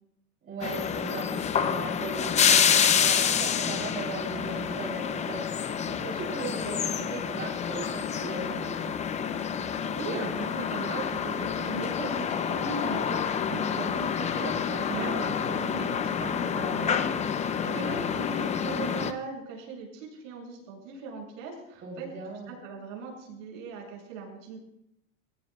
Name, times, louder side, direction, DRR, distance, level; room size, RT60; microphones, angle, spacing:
voice 1, 0.4-9.0 14.7-15.3 17.5-18.0 21.8-22.5, right 3 dB, 25° right, -2 dB, 3.5 m, -38 dB
sound 1, 0.6-19.1, left 7 dB, 15° left, 0.6 m, -28 dB
voice 2, 9.9-22.1 22.5-24.6, right 4 dB, 65° right, -1 dB, 7.3 m, -39 dB
22.0 x 17.0 x 2.4 m, 0.79 s
supercardioid pair, 135°, 41 cm